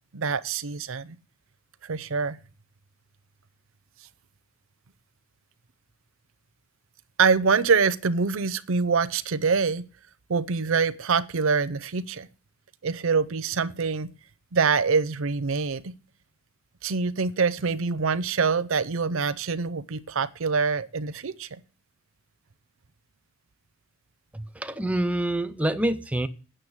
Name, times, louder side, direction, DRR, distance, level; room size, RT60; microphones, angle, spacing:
voice 1, 0.1-1.2 1.8-2.4 7.2-9.9 10.3-12.3 12.8-14.1 14.5-15.9 16.8-21.6, right 5 dB, 60° right, 0.6 m, -25 dB
voice 2, 24.3-26.3, right 1 dB, 5° right, 0.5 m, -26 dB
8.9 x 6.6 x 8.0 m
head